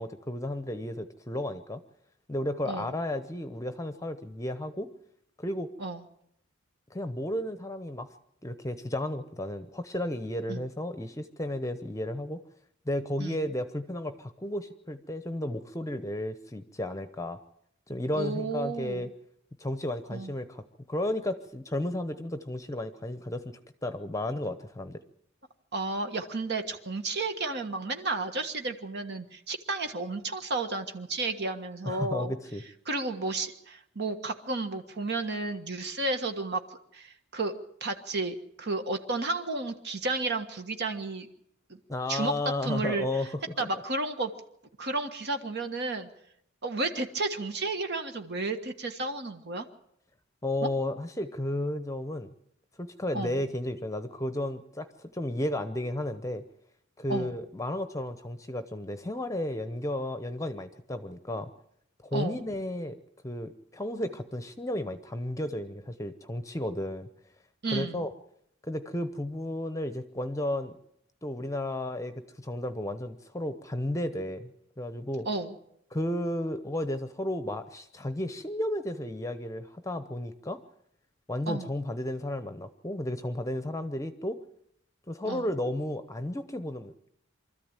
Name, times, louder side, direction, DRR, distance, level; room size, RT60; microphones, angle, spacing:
voice 1, 0.0-1.8 2.3-4.9 5.4-5.7 6.9-8.1 8.4-12.4 12.9-17.4 17.9-19.1 19.6-25.0 31.8-32.6 41.9-43.7 50.4-52.3 52.8-56.4 57.0-61.5 62.0-67.1 67.7-68.1 68.6-70.8 71.2-74.5 74.8-75.3 75.9-80.6 81.3-84.4 85.1-87.1, left 1 dB, 15° left, 10 dB, 0.9 m, -33 dB
voice 2, 18.1-19.1 20.1-20.3 25.7-32.3 32.8-37.5 37.8-41.3 42.1-42.3 42.6-43.3 43.6-44.3 44.8-46.1 46.6-49.6 50.6-50.7 53.1-53.4 57.1-57.3 62.1-62.4 67.6-68.0 75.2-75.5 81.5-81.7 85.2-85.5, right 3 dB, 55° right, 6 dB, 1.6 m, -32 dB
24.5 x 13.5 x 8.9 m, 0.74 s
head